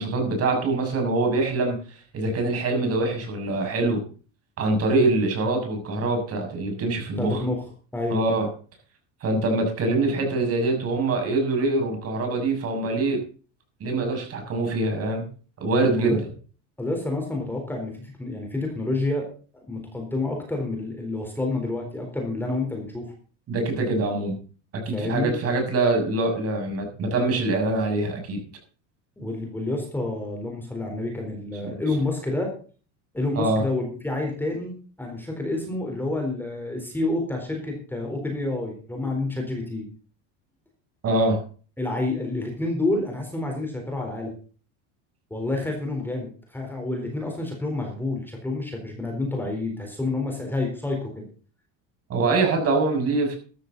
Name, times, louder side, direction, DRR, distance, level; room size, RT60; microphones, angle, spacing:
voice 1, 0.0-4.0 4.6-7.4 8.1-8.5 9.2-13.2 13.8-15.3 15.6-16.2 23.5-24.4 24.8-28.4 31.6-31.8 33.3-33.6 41.0-41.4 52.1-53.4, right 2 dB, 40° right, 3 dB, 6.9 m, -24 dB
voice 2, 7.2-7.7 7.9-8.2 16.0-16.2 16.8-19.3 19.7-23.1 24.9-25.3 29.2-32.5 33.1-34.7 35.0-39.9 41.8-44.3 45.3-51.3, left 2 dB, 5° left, 1 dB, 4.1 m, -28 dB
14.0 x 13.0 x 4.1 m, 0.39 s
cardioid pair, 130°, 37 cm